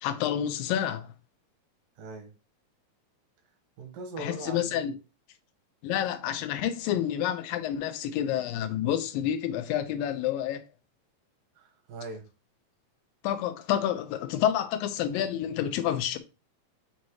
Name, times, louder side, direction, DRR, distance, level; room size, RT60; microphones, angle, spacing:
voice 1, 0.0-1.1 4.2-4.9 5.8-10.6 13.2-16.2, left 10 dB, 90° left, 2.5 m, -29 dB
voice 2, 2.0-2.3 3.8-5.0 11.6-12.3, right 2 dB, 75° right, 3.0 m, -40 dB
7.3 x 2.8 x 4.7 m
omnidirectional pair, 4.0 m